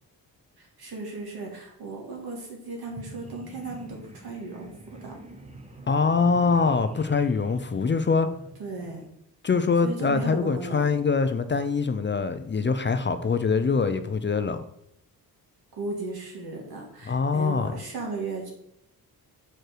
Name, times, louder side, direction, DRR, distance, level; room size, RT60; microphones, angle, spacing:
voice 1, 0.6-4.7 5.0-5.1 8.6-9.0 9.8-10.9 15.8-18.5, right 3 dB, 70° right, 2.4 m, -36 dB
sound 1, 2.8-9.1, right 2 dB, 15° right, 1.0 m, -45 dB
voice 2, 5.9-8.3 9.4-14.6 17.1-17.8, left 5 dB, 30° left, 0.5 m, -24 dB
6.4 x 4.9 x 4.5 m
cardioid pair, 90°, 39 cm